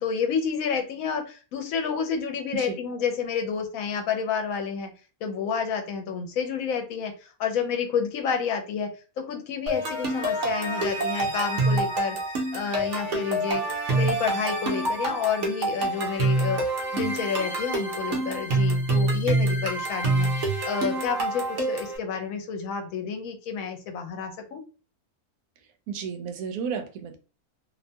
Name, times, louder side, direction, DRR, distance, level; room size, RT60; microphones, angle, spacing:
voice 1, 0.0-4.9 5.2-7.1 7.4-8.9 9.2-12.2 12.5-13.6 13.9-16.6 16.9-24.6, left 6 dB, 70° left, 5 dB, 1.1 m, -29 dB
sound 1, 9.7-22.0, right 2 dB, 60° right, 1.0 m, -26 dB
voice 2, 25.9-27.2, right 6 dB, 90° right, 7 dB, 1.1 m, -32 dB
2.8 x 2.1 x 2.6 m, 0.35 s
omnidirectional pair, 1.5 m